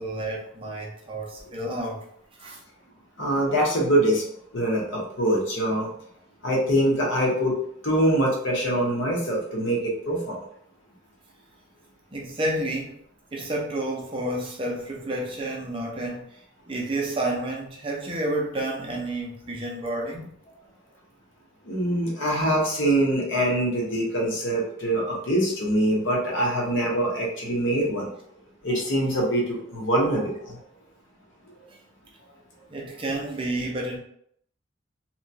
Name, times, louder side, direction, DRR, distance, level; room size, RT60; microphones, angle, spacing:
voice 1, 0.0-2.0 2.4-2.6 12.1-13.0 13.3-16.4 16.7-20.3 32.7-34.0, right 1 dB, 30° right, -1 dB, 0.5 m, -30 dB
voice 2, 3.2-4.2 4.5-5.9 6.4-7.5 7.8-10.4 21.7-28.1 28.6-30.6, right 1 dB, 80° left, -2 dB, 0.9 m, -24 dB
2.9 x 2.2 x 2.6 m, 0.68 s
head